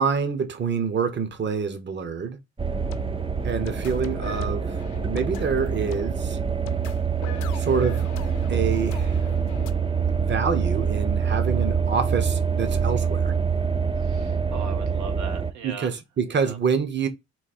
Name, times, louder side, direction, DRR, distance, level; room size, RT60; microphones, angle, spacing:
voice 1, 0.0-2.4 3.4-4.8 5.1-6.4 7.5-8.1 8.5-9.2 10.2-13.3 15.6-17.1, right 6 dB, 35° right, 0.9 m, -26 dB
sound 1, 2.6-9.7, left 9 dB, 90° left, 0.7 m, -40 dB
sound 2, 2.6-15.5, right 6 dB, 20° right, 0.5 m, -25 dB
voice 2, 13.9-16.0 16.3-16.6, right 6 dB, 70° right, 0.9 m, -39 dB
4.0 x 2.7 x 4.2 m
cardioid pair, 90°, 30 cm